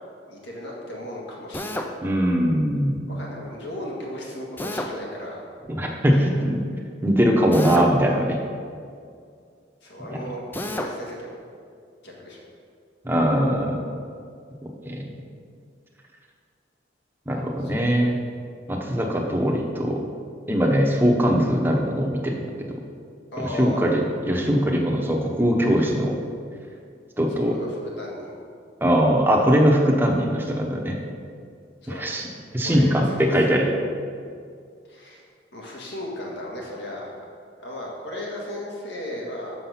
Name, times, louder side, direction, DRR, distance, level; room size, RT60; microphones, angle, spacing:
voice 1, 0.3-1.9 3.1-5.4 6.1-6.2 9.8-11.3 12.0-12.4 17.6-17.8 23.3-23.8 27.5-28.4 31.8-32.1 32.6-33.3 33.6-33.7 34.9-35.2 35.5-37.1 37.6-39.5, left 1 dB, 75° left, -3 dB, 1.7 m, -35 dB
Drill, 1.5-1.9 4.6-4.9 7.5-8.0 10.5-10.9, left 1 dB, 10° left, 0.4 m, -29 dB
voice 2, 2.0-3.0 5.7-6.6 7.0-8.4 10.1-10.2 13.0-13.9 14.9-15.0 17.3-18.2 18.7-20.0 20.5-22.8 23.4-26.2 27.2-27.6 28.8-31.0 31.9-32.3 32.5-33.7, equal, 10° right, -1 dB, 0.8 m, -21 dB
6.5 x 5.8 x 5.6 m, 2.3 s
head